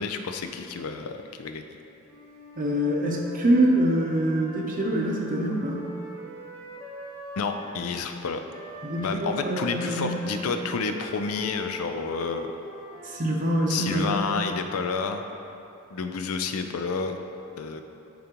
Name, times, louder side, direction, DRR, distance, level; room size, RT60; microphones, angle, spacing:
voice 1, 0.0-1.8 7.4-8.4 9.0-12.5 13.7-15.2 15.9-17.2 17.6-17.8, left 4 dB, 80° left, 6 dB, 0.4 m, -30 dB
Wind instrument woodwind instrument, 2.0-7.8 8.5-15.0, right 1 dB, 5° left, 1.0 m, -43 dB
voice 2, 2.6-5.8 8.8-10.3 13.0-14.1, right 1 dB, 40° right, -1 dB, 0.7 m, -25 dB
10.5 x 3.8 x 2.9 m, 2.8 s
head